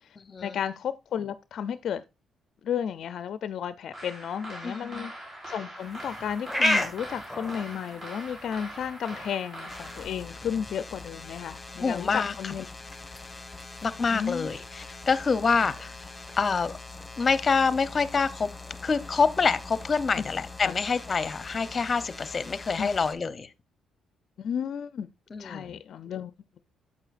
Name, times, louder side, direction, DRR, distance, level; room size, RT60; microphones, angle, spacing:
voice 1, 0.4-2.0 2.6-5.1 5.5-12.7 14.1-14.5 15.6-15.7 20.2-20.3 20.7-20.8 22.8-22.9 24.4-25.1 25.4-26.3, left 8 dB, 65° left, 0.4 m, -33 dB
sound 1, 3.9-10.0, right 1 dB, 40° right, 3.5 m, -42 dB
voice 2, 4.6-5.1 11.8-12.3 13.8-16.0 16.4-16.7 17.2-18.5 18.8-23.5 25.3-25.8, left 5 dB, 35° left, 0.7 m, -26 dB
sound 2, 5.8-19.9, left 1 dB, 10° right, 1.8 m, -37 dB
sound 3, 9.7-23.1, left 3 dB, 10° left, 1.3 m, -43 dB
8.9 x 7.4 x 2.5 m
cardioid pair, 90°, 0 cm